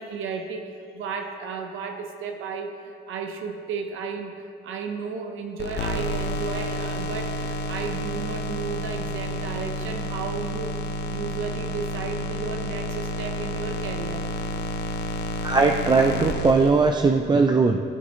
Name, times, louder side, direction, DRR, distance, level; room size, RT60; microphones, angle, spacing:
voice 1, 0.0-14.4, right 5 dB, 85° right, 4 dB, 0.9 m, -34 dB
sound 1, 5.6-17.3, left 1 dB, 60° left, 0.8 m, -30 dB
voice 2, 15.4-17.8, right 4 dB, 20° right, 4 dB, 0.5 m, -19 dB
17.0 x 7.1 x 3.1 m, 2.4 s
cardioid pair, 90°, 20 cm